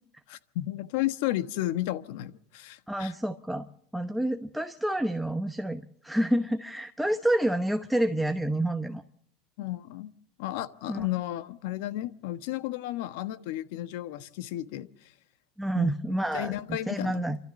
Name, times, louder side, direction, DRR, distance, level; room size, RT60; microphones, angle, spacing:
voice 1, 0.3-3.1 9.6-10.1 10.4-14.9 15.7-15.9 16.3-17.2, left 15 dB, 75° left, 1.2 m, -33 dB
voice 2, 2.9-3.7 3.9-9.0 10.9-11.1 15.6-16.6 16.9-17.4, right 1 dB, ahead, 0.9 m, -28 dB
28.0 x 13.0 x 7.1 m
supercardioid pair, 125°, 0 cm